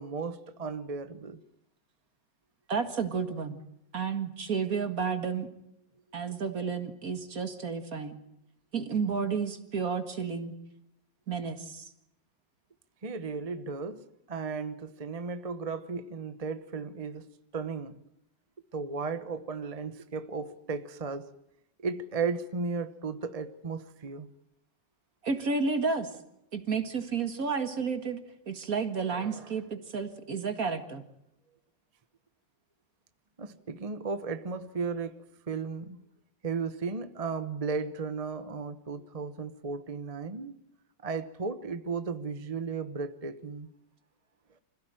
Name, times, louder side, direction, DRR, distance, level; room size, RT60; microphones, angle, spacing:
voice 1, 0.0-1.4 13.0-17.3 17.5-18.0 18.7-21.3 21.8-24.3 29.1-29.6 33.4-35.2 35.5-36.0 36.4-40.5 41.0-43.7, right 4 dB, 30° right, 0.8 m, -35 dB
voice 2, 2.7-3.6 3.9-5.5 6.1-8.2 8.7-10.5 11.3-11.9 25.2-26.1 26.5-28.2 28.5-31.0, right 5 dB, 50° right, 2.2 m, -31 dB
26.0 x 16.0 x 9.0 m
omnidirectional pair, 2.0 m